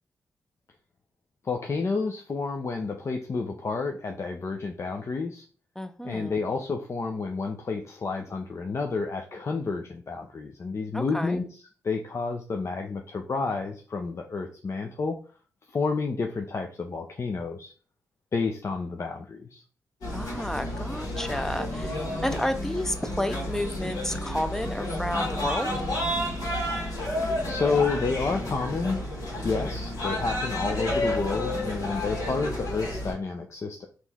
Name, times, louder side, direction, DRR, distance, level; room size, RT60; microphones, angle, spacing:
voice 1, 1.4-5.4 6.0-15.2 15.7-17.7 18.3-19.6 27.4-29.0 29.4-33.9, left 4 dB, 45° left, 3 dB, 0.6 m, -30 dB
voice 2, 5.8-6.4 10.9-11.4 20.1-25.7, left 1 dB, 5° left, 9 dB, 0.5 m, -31 dB
sound 1, 20.0-33.1, left 1 dB, 75° left, 2.0 m, -31 dB
4.2 x 3.1 x 3.5 m, 0.39 s
cardioid pair, 70°, 7 cm